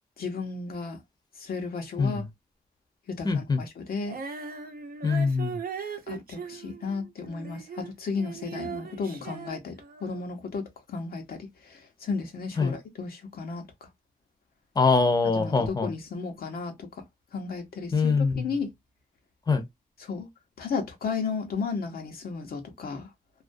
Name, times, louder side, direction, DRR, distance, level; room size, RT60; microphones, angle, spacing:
voice 1, 0.2-1.0 1.4-2.2 3.1-4.2 6.1-13.9 15.3-17.0 17.3-18.7 20.0-20.3 20.6-23.1, left 4 dB, 85° left, 0.7 m, -34 dB
voice 2, 3.2-3.6 5.0-5.6 12.6-12.7 14.8-15.9 17.9-18.5 19.5-19.6, left 4 dB, 25° left, 0.6 m, -23 dB
Female singing, 4.0-7.9 8.2-10.3, right 6 dB, 80° right, 0.6 m, -39 dB
2.4 x 2.2 x 2.5 m
wide cardioid pair, 90°, 15 cm